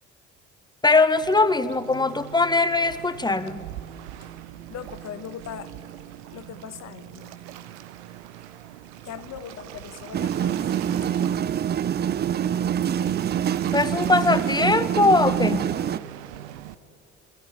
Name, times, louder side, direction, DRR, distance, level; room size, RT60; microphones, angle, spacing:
voice 1, 0.8-3.6 13.7-15.6, left 3 dB, 15° left, 12 dB, 1.0 m, -21 dB
Waves surf, 1.1-16.7, right 12 dB, 90° right, 0.8 m, -42 dB
voice 2, 4.7-5.7 6.3-7.4 9.0-10.6 11.1-11.3, left 9 dB, 55° left, 11 dB, 1.3 m, -39 dB
sound 1, 10.1-16.0, right 9 dB, 30° right, 0.4 m, -25 dB
20.0 x 15.0 x 9.1 m, 2.5 s
hypercardioid pair, 65°, 32 cm